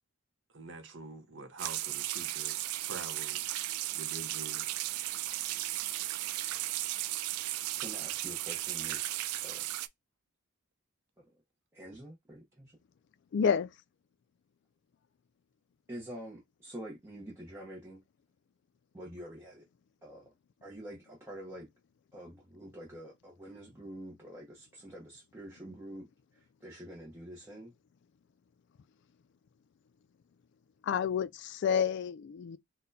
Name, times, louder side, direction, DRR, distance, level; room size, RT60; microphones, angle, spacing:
voice 1, 0.5-3.5 3.9-4.7, right 3 dB, 55° right, 0.7 m, -46 dB
sound 1, 1.6-9.9, right 15 dB, 85° right, 0.3 m, -35 dB
voice 2, 7.8-9.1 9.4-9.6 11.2-11.4 11.7-12.8 15.9-18.0 18.9-19.6 20.0-20.3 20.6-21.7 22.1-26.1 26.3-27.7, right 1 dB, 10° right, 0.8 m, -46 dB
voice 3, 13.3-13.7 30.8-32.6, left 7 dB, 55° left, 0.3 m, -29 dB
4.2 x 2.2 x 2.6 m
head